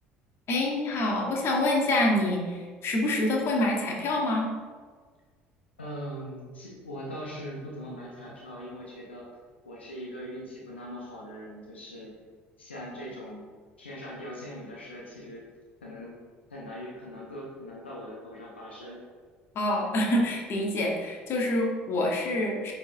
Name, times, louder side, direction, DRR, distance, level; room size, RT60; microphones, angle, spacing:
voice 1, 0.5-4.5 19.5-22.7, left 1 dB, 45° left, -1 dB, 1.7 m, -26 dB
voice 2, 5.8-9.3 9.6-12.1 12.6-13.4 13.8-15.4 15.8-16.2 16.5-19.0, equal, 85° left, -4 dB, 1.2 m, -41 dB
9.5 x 4.8 x 3.0 m, 1.6 s
figure-of-eight pair, 60°, 6 cm